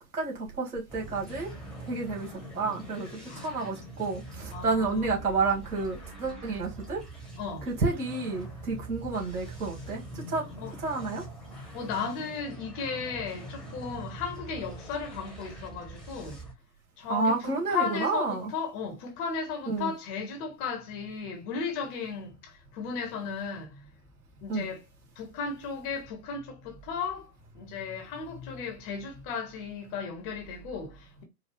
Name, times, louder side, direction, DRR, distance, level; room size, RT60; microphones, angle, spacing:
voice 1, 0.1-1.5 1.9-7.0 7.7-10.5 10.8-11.2 17.1-18.5 19.7-19.9 24.5-24.7, right 3 dB, 70° right, 2.2 m, -30 dB
sound 1, 0.9-16.5, right 2 dB, ahead, 1.2 m, -43 dB
voice 2, 3.2-3.7 4.5-5.1 7.4-7.7 10.6-10.8 11.7-16.4 17.0-23.8 24.4-24.8 25.2-31.2, left 5 dB, 30° left, 1.0 m, -35 dB
4.6 x 2.3 x 3.3 m
figure-of-eight pair, 115°, 46 cm